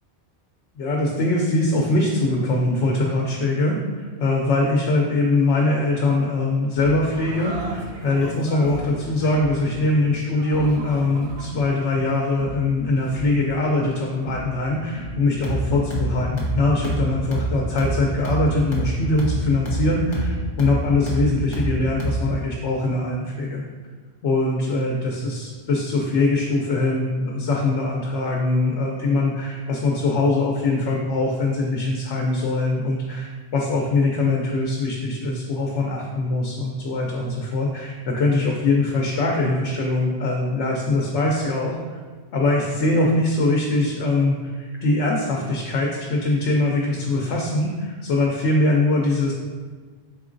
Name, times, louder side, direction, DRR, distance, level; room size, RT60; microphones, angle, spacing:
voice 1, 0.8-23.6 24.2-42.0 42.3-49.3, left 2 dB, 85° left, -1 dB, 0.9 m, -22 dB
sound 1, 6.8-22.4, right 1 dB, 55° left, 1.1 m, -29 dB
sound 2, 7.1-13.8, right 3 dB, 50° right, 0.5 m, -41 dB
4.2 x 3.7 x 2.5 m, 1.5 s
omnidirectional pair, 1.1 m